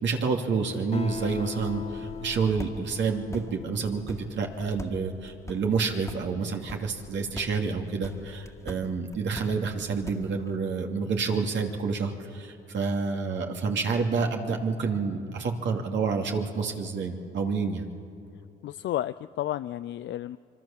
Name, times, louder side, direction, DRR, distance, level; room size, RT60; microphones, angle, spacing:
voice 1, 0.0-17.9, right 5 dB, 65° right, 2 dB, 2.7 m, -29 dB
Acoustic guitar, 0.9-4.7, left 5 dB, 30° left, 1.6 m, -39 dB
sound 1, 1.0-10.6, left 1 dB, 15° left, 2.1 m, -45 dB
voice 2, 18.6-20.4, left 13 dB, 70° left, 14 dB, 0.5 m, -32 dB
25.5 x 23.5 x 7.3 m, 2.7 s
cardioid pair, 90°, 20 cm